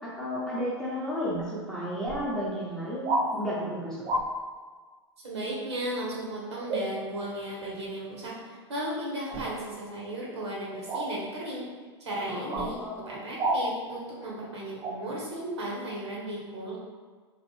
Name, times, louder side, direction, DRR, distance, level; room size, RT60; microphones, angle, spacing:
voice 1, 0.0-4.0 12.3-13.0, equal, 5° left, -7 dB, 0.8 m, -33 dB
sound 1, 1.3-1.5 2.0-2.2 3.0-3.3 4.0-4.3 6.7-6.9 9.3-9.5 10.9-11.1 12.5-12.7 13.4-13.6 14.8-14.9, right 2 dB, 30° right, 0.5 m, -29 dB
voice 2, 5.2-11.7 12.0-16.8, right 1 dB, 70° right, -4 dB, 1.1 m, -35 dB
3.1 x 2.5 x 3.1 m, 1.5 s
figure-of-eight pair, 95°, 15 cm